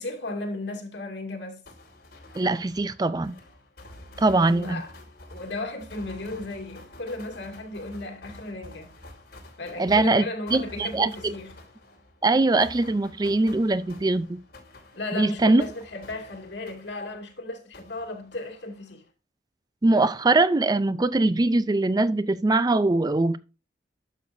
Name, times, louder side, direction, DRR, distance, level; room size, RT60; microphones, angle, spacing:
voice 1, 0.0-1.6 4.4-4.9 5.3-8.9 9.6-11.5 14.9-19.0, left 2 dB, 80° left, 2.4 m, -35 dB
sound 1, 1.7-17.4 17.7-19.1, left 1 dB, 55° left, 4.3 m, -48 dB
voice 2, 2.3-3.3 4.2-4.8 9.8-10.2 10.5-11.3 12.2-14.4 15.1-15.6 19.8-23.4, right 2 dB, 20° right, 0.4 m, -22 dB
11.5 x 6.5 x 2.6 m
head